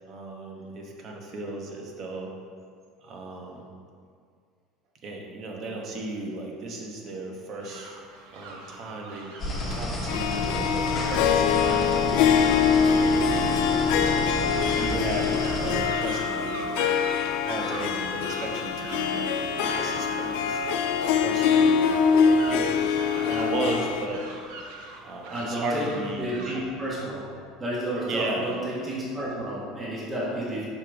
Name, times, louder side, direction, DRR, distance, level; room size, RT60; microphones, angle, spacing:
voice 1, 0.1-2.3 3.0-3.6 5.0-8.0 8.3-9.3 9.7-12.2 12.9-14.4 14.7-16.8 17.4-20.6 21.2-21.9 22.2-24.3 25.0-26.3 28.0-28.5, right 2 dB, 45° right, 0 dB, 1.0 m, -35 dB
sound 1, 7.6-26.6, right 2 dB, 80° right, 0.8 m, -42 dB
sound 2, 9.4-15.8, left 1 dB, 25° left, 1.2 m, -31 dB
Harp, 10.1-24.1, left 6 dB, 75° left, 0.4 m, -24 dB
voice 2, 25.3-25.8 26.2-27.2 27.6-30.7, right 1 dB, 25° right, -6 dB, 1.4 m, -31 dB
5.7 x 5.1 x 3.4 m, 2.1 s
supercardioid pair, 125°, 0 cm